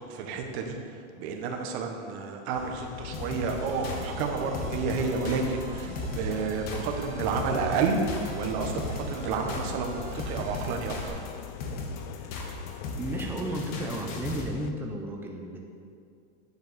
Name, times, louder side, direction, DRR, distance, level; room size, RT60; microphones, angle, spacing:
voice 1, 0.0-11.3, right 4 dB, 60° right, 3 dB, 1.6 m, -31 dB
sound 1, 2.5-14.7, left 13 dB, 75° left, 0.6 m, -42 dB
sound 2, 3.1-14.5, left 2 dB, 55° left, 1.9 m, -36 dB
sound 3, 3.4-11.1, right 4 dB, 80° right, 2.2 m, -41 dB
voice 2, 13.0-15.7, right 1 dB, 5° right, 0 dB, 0.8 m, -34 dB
9.7 x 7.6 x 7.1 m, 2.3 s
supercardioid pair, 160°, 35 cm